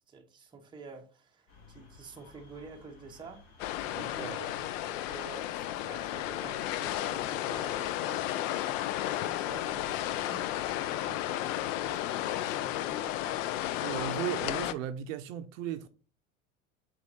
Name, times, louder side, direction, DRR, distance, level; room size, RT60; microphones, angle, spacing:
voice 1, 0.1-3.4 3.8-8.5 9.0-10.4 10.7-13.4, right 4 dB, 10° right, 0.7 m, -49 dB
sound 1, 1.5-14.2, left 4 dB, 50° left, 1.6 m, -57 dB
sound 2, 3.6-14.7, left 13 dB, 65° left, 0.5 m, -33 dB
voice 2, 3.9-4.4 13.8-15.9, right 10 dB, 65° right, 0.6 m, -36 dB
4.2 x 4.0 x 2.7 m
hypercardioid pair, 85°, 42 cm